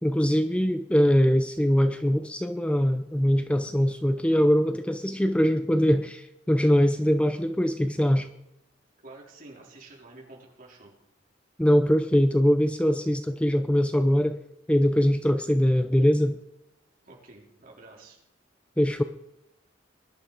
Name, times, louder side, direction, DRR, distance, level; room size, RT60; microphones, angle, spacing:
voice 1, 0.0-8.3 11.6-14.4 14.7-16.4 18.8-19.0, equal, 5° left, 9 dB, 0.5 m, -22 dB
voice 2, 9.0-10.9 17.0-18.2, right 2 dB, 45° right, -2 dB, 4.2 m, -49 dB
20.5 x 11.5 x 5.0 m, 0.85 s
head